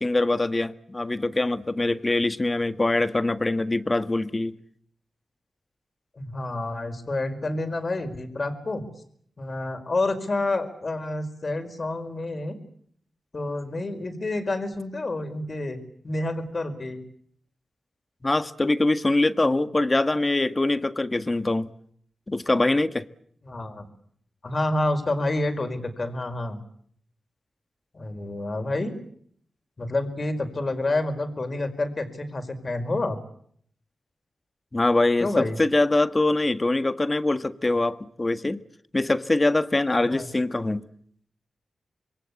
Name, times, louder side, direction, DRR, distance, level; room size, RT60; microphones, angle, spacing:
voice 1, 0.0-4.6 18.2-21.7 22.3-23.1 34.7-38.6 38.9-40.8, left 2 dB, 30° left, 1.7 m, -23 dB
voice 2, 6.2-8.8 9.4-12.6 13.3-15.8 16.0-17.0 23.4-23.9 24.4-26.6 27.9-28.9 29.8-33.2 35.2-35.6 40.1-40.3, left 2 dB, 50° left, 5.0 m, -28 dB
27.0 x 22.0 x 8.5 m
cardioid pair, 45°, 0 cm